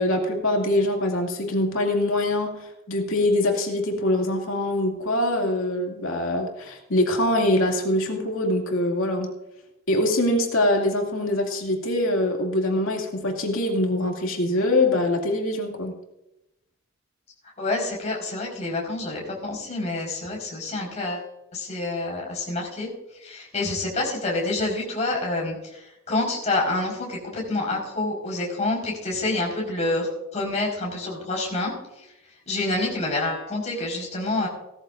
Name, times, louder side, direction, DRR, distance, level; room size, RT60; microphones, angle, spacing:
voice 1, 0.0-9.3 9.9-15.9, left 1 dB, 75° left, 1 dB, 2.5 m, -23 dB
voice 2, 17.6-22.9 23.2-31.7 32.5-34.5, left 2 dB, 30° left, -2 dB, 4.7 m, -27 dB
17.5 x 13.5 x 2.6 m, 0.90 s
head